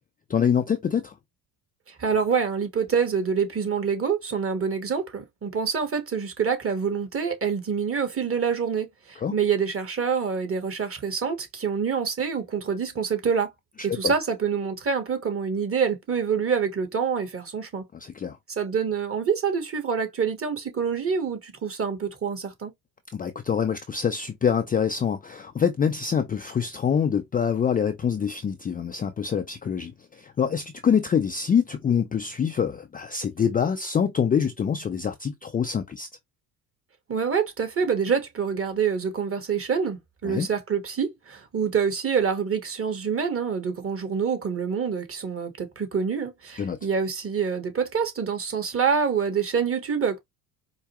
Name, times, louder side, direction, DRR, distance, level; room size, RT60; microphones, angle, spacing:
voice 1, 0.3-1.1 9.2-9.3 13.9-14.1 18.0-18.4 23.1-36.1 40.2-40.5 46.6-46.8, left 7 dB, 20° left, 0.4 m, -25 dB
voice 2, 1.9-13.5 13.8-17.9 18.5-22.7 37.1-50.2, right 6 dB, 30° right, 1.3 m, -26 dB
4.7 x 2.2 x 2.9 m
supercardioid pair, 90°, 44 cm